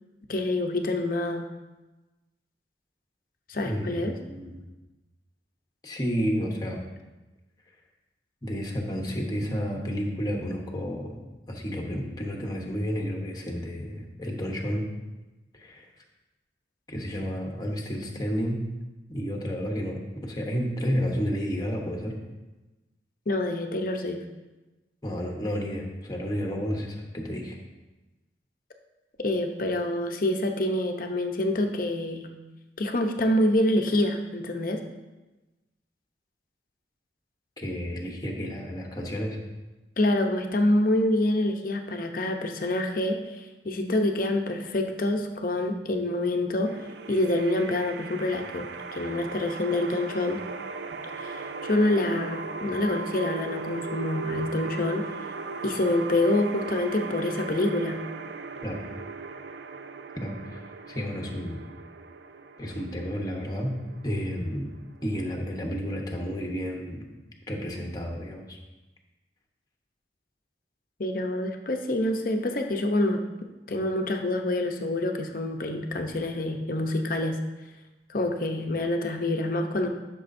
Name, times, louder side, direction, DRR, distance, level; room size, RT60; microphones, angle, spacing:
voice 1, 0.3-1.5 3.5-4.1 23.3-24.2 29.2-32.3 32.8-34.8 40.0-50.4 51.2-55.2 55.6-58.0 71.0-73.2 73.7-77.4 78.1-79.9, left 1 dB, 50° left, 4 dB, 0.7 m, -26 dB
voice 2, 3.6-4.7 5.8-6.8 8.4-11.2 11.5-14.9 15.5-15.9 16.9-18.6 19.1-22.2 25.0-27.6 37.6-39.4 58.6-58.8 60.2-61.6 62.6-63.7 64.0-64.7 65.0-67.1 67.5-68.6, equal, 20° left, 0 dB, 1.0 m, -31 dB
sound 1, 46.6-65.6, right 4 dB, 75° right, 0.5 m, -38 dB
12.5 x 6.2 x 2.6 m, 1.1 s
head